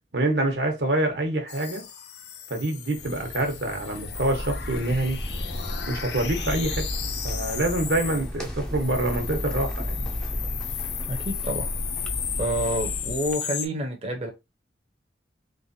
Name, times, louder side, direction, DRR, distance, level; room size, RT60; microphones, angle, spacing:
voice 1, 0.1-1.9 2.5-5.2 5.9-6.9 7.2-10.0, right 2 dB, 80° right, 1.0 m, -26 dB
sound 1, 1.5-8.3 8.7-13.7, left 9 dB, 80° left, 0.5 m, -35 dB
Accelerating revving vroom, 2.9-9.8, left 1 dB, 65° left, 1.2 m, -45 dB
sound 2, 4.0-13.3, equal, 5° left, 0.5 m, -33 dB
voice 2, 11.1-11.7 12.4-14.3, right 1 dB, 35° right, 0.7 m, -28 dB
3.2 x 3.0 x 2.6 m
head